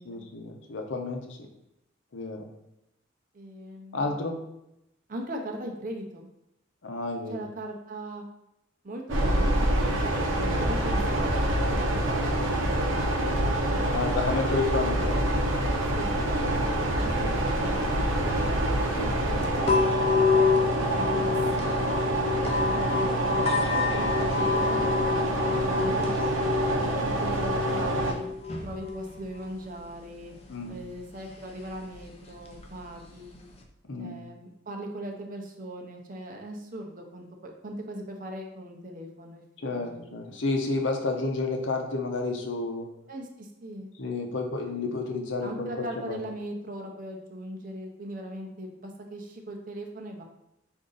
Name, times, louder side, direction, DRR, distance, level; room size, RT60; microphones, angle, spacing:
voice 1, 0.0-1.4 2.1-2.5 3.9-4.4 6.8-7.4 13.9-15.2 16.4-16.8 19.0-19.1 30.5-30.8 33.9-34.2 39.6-42.9 44.0-46.2, left 3 dB, 70° left, 3 dB, 0.7 m, -31 dB
voice 2, 3.3-4.1 5.1-6.3 7.3-8.3 8.8-12.0 12.6-14.4 15.9-16.2 17.0-18.6 19.1-20.5 20.9-23.5 23.9-26.6 27.0-28.3 28.6-30.3 30.7-33.4 34.0-39.4 39.7-40.4 43.1-43.9 45.4-50.2, right 1 dB, 45° right, 2 dB, 0.7 m, -40 dB
sound 1, 9.1-28.1, right 1 dB, 85° right, 0.7 m, -26 dB
sound 2, 19.6-33.6, left 5 dB, 30° left, 0.5 m, -29 dB
5.1 x 2.6 x 3.9 m, 0.85 s
head